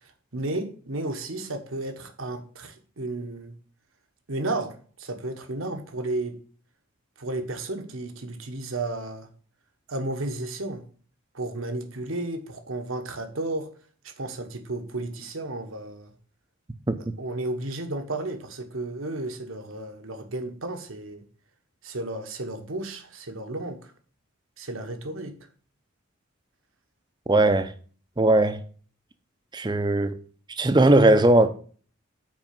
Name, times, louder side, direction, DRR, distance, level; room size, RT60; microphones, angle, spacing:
voice 1, 0.0-3.5 4.3-6.4 7.2-9.3 9.9-10.8 11.3-13.7 14.0-16.1 17.0-21.2 21.8-23.9 24.6-25.3, right 2 dB, 75° right, 1.3 m, -33 dB
voice 2, 27.3-27.7 28.2-28.6 29.5-30.2 30.6-31.5, right 2 dB, 20° right, 0.6 m, -18 dB
6.1 x 4.9 x 6.7 m
head